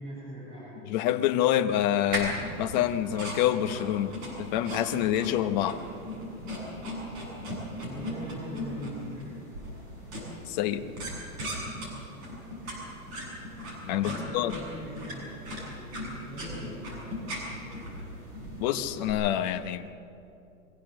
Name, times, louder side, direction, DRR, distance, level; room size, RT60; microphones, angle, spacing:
voice 1, 0.0-0.7 7.9-9.3 14.0-15.4 15.7-17.8, left 1 dB, 10° right, -10 dB, 7.4 m, -42 dB
voice 2, 0.9-5.8 10.5-10.8 13.8-14.6 18.6-19.8, left 11 dB, 30° left, 8 dB, 0.8 m, -27 dB
sound 1, 2.1-19.1, equal, 30° right, 7.3 m, -38 dB
23.5 x 16.0 x 7.7 m, 2.6 s
supercardioid pair, 170°, 44 cm